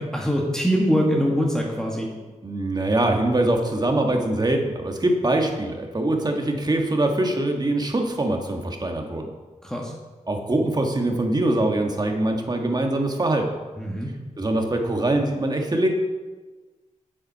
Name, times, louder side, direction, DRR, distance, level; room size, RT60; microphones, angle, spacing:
voice 1, 0.0-2.1 9.6-9.9 13.8-14.1, equal, 5° left, -2 dB, 1.6 m, -23 dB
voice 2, 2.4-9.3 10.3-13.5 14.4-15.9, right 1 dB, 30° right, 3 dB, 1.6 m, -23 dB
7.8 x 7.6 x 5.6 m, 1.3 s
cardioid pair, 70°, 13 cm